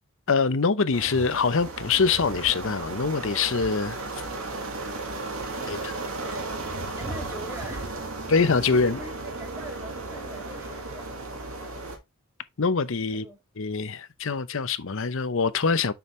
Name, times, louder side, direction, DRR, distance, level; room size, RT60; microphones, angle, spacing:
voice 1, 0.3-4.0 5.7-5.8 8.3-9.0 12.6-13.3 13.6-15.9, left 5 dB, 60° left, 0.7 m, -24 dB
sound 1, 0.9-12.0, right 2 dB, 75° right, 1.9 m, -35 dB
voice 2, 5.2-8.4 8.7-11.1 13.1-13.4, right 1 dB, 10° right, 1.9 m, -43 dB
6.9 x 5.4 x 3.1 m
head